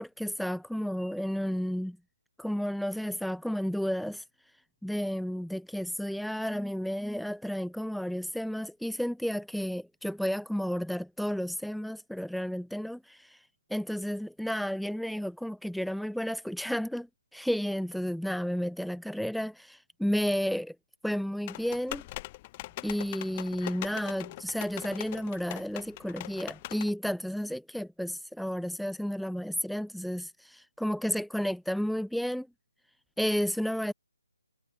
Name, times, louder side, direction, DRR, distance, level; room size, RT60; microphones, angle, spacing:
voice 1, 0.0-2.0 2.4-4.2 4.8-13.4 13.7-17.1 17.3-20.8 21.0-22.0 22.8-32.5 33.2-33.9, equal, ahead, 1.1 m, -32 dB
sound 1, 21.5-26.9, left 19 dB, 30° left, 6.0 m, -42 dB
figure-of-eight pair, 150°, 0 cm